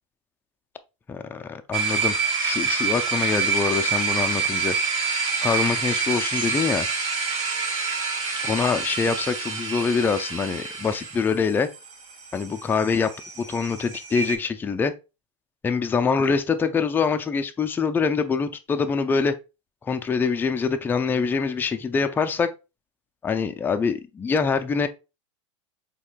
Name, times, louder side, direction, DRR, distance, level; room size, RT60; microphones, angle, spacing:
voice 1, 1.1-2.1 2.4-4.8 5.4-6.9 8.4-11.7 12.3-13.1 13.4-14.9 15.6-19.4 19.8-22.5 23.2-24.9, left 5 dB, 10° left, 0.3 m, -24 dB
sound 1, 1.7-14.4, right 5 dB, 40° right, 1.0 m, -27 dB
4.2 x 2.9 x 2.4 m
hypercardioid pair, 110°, 17 cm